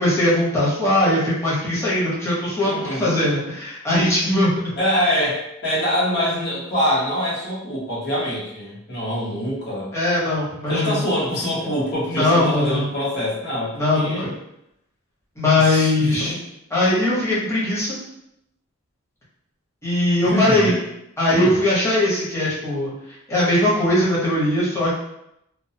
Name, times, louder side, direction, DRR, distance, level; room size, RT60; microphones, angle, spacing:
voice 1, 0.0-4.7 9.9-11.0 12.1-12.9 13.7-14.3 15.4-16.3 16.7-18.0 19.8-20.7 21.2-24.9, left 1 dB, 10° left, -8 dB, 0.8 m, -20 dB
voice 2, 2.6-3.2 4.8-9.9 10.7-14.3 15.6-16.3 20.2-20.8 21.3-21.6, equal, 50° left, -7 dB, 0.9 m, -24 dB
2.4 x 2.1 x 2.7 m, 0.81 s
head